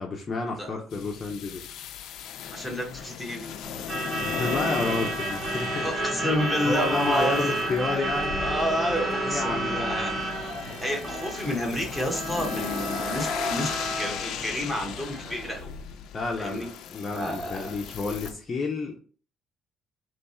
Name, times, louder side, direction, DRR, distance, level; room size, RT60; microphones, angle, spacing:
voice 1, 0.0-1.6 4.1-6.4 6.7-8.4 9.2-10.3 16.1-19.0, left 3 dB, 25° left, 0 dB, 0.6 m, -31 dB
sound 1, 0.9-18.3, left 8 dB, 70° left, 0.4 m, -37 dB
voice 2, 2.5-3.5 4.1-4.2 5.8-7.7 8.4-10.1 10.6-15.7 16.4-16.7 17.1-17.7, equal, 5° right, 0 dB, 1.1 m, -30 dB
Truck / Alarm, 3.6-15.6, right 1 dB, 30° right, 1.4 m, -31 dB
3.4 x 3.1 x 4.1 m, 0.41 s
cardioid pair, 165°, 0 cm